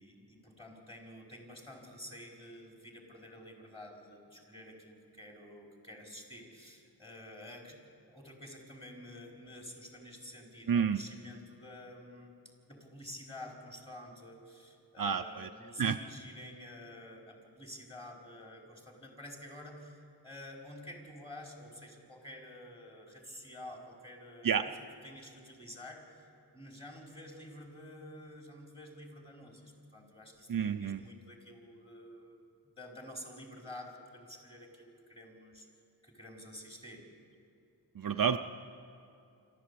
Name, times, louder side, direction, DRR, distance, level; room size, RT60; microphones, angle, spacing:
voice 1, 0.0-12.3 12.7-24.8 25.0-26.3 26.5-32.3 32.7-35.7 36.0-37.0, left 1 dB, 15° left, 0 dB, 4.9 m, -50 dB
voice 2, 10.7-11.0 15.0-15.5 15.8-16.0 24.4-24.6 30.5-31.0 38.0-38.4, right 7 dB, 55° right, 7 dB, 0.6 m, -29 dB
26.0 x 13.5 x 8.5 m, 2.6 s
wide cardioid pair, 80°, 41 cm